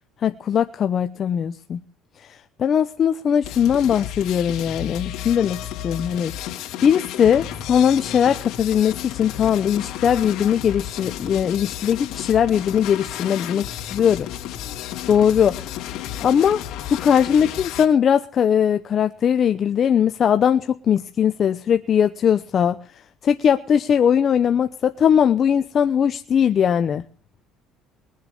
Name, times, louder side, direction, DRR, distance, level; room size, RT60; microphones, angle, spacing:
voice 1, 0.2-1.8 2.2-6.3 6.8-14.3 15.1-15.8 16.2-16.6 16.9-22.8 23.2-27.0, left 8 dB, 40° left, 0.8 m, -20 dB
sound 1, 3.4-17.9, left 12 dB, 70° left, 2.6 m, -32 dB
22.0 x 7.5 x 8.4 m
cardioid pair, 140°, 0 cm